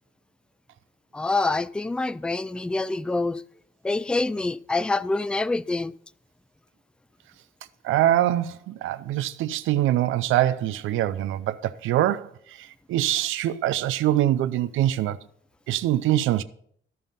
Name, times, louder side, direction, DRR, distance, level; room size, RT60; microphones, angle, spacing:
voice 1, 1.1-3.4 3.8-5.9, left 3 dB, 5° left, 0.3 m, -26 dB
voice 2, 7.8-15.2 15.7-16.4, right 13 dB, 85° right, 0.5 m, -24 dB
13.0 x 5.5 x 5.4 m
cardioid pair, 90°, 20 cm